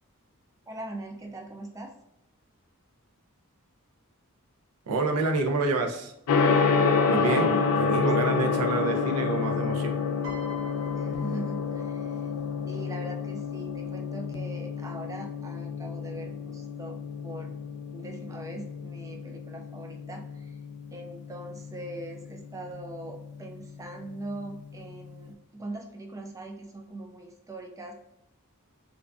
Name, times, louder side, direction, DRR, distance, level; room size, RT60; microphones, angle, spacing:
voice 1, 0.7-1.9 7.1-7.7 10.9-12.3 12.7-17.5 17.9-20.6 20.9-27.9, right 1 dB, 15° right, 2 dB, 0.3 m, -41 dB
voice 2, 4.9-6.1 7.1-9.9, right 3 dB, 85° right, 4 dB, 0.5 m, -28 dB
Gong, 6.3-25.2, left 5 dB, 80° left, 0.3 m, -29 dB
Piano, 10.2-12.6 13.6-13.9, left 3 dB, 55° right, 0.7 m, -45 dB
2.5 x 2.1 x 2.3 m, 0.79 s
head